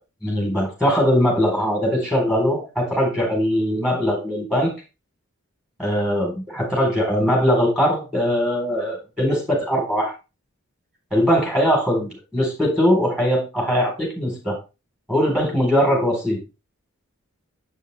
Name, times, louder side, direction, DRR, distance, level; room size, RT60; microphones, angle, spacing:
voice 1, 0.2-4.7 5.8-10.1 11.1-14.6 15.1-16.4, equal, 5° right, -2 dB, 4.0 m, -21 dB
7.6 x 6.6 x 3.4 m, 0.29 s
head